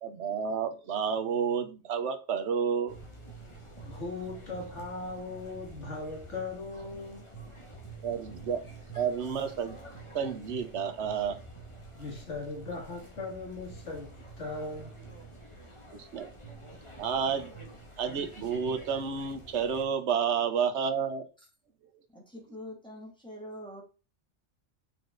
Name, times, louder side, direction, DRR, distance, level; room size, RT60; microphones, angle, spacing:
voice 1, 0.0-3.0 8.0-8.6 9.0-9.8 10.1-11.4 15.9-16.3 17.0-17.5 18.0-21.2, right 7 dB, 75° right, 1.2 m, -30 dB
sound 1, 2.9-19.8, right 3 dB, 25° left, 2.0 m, -48 dB
voice 2, 3.8-7.2 12.0-14.1 14.4-15.0, left 3 dB, 85° left, 2.3 m, -38 dB
voice 3, 22.1-23.8, left 1 dB, 5° left, 2.6 m, -44 dB
6.9 x 5.8 x 3.9 m
omnidirectional pair, 1.2 m